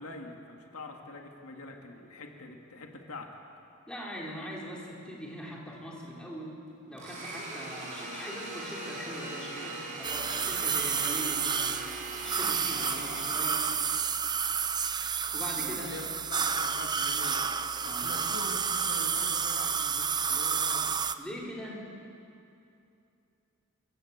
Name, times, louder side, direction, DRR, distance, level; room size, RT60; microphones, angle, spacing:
voice 1, 0.0-3.4 12.7-13.3 15.5-17.5 17.8-21.0, left 2 dB, 80° left, 2 dB, 2.1 m, -44 dB
voice 2, 3.9-6.6 6.9-11.8 12.2-13.7 15.3-15.9 17.9-18.3 21.2-21.9, equal, 5° left, -4 dB, 4.0 m, -41 dB
Domestic sounds home sounds, 7.0-14.0, right 2 dB, 35° right, 5.8 m, -40 dB
sound 1, 10.0-21.2, right 6 dB, 20° right, 0.6 m, -30 dB
27.0 x 16.0 x 8.2 m, 2.7 s
head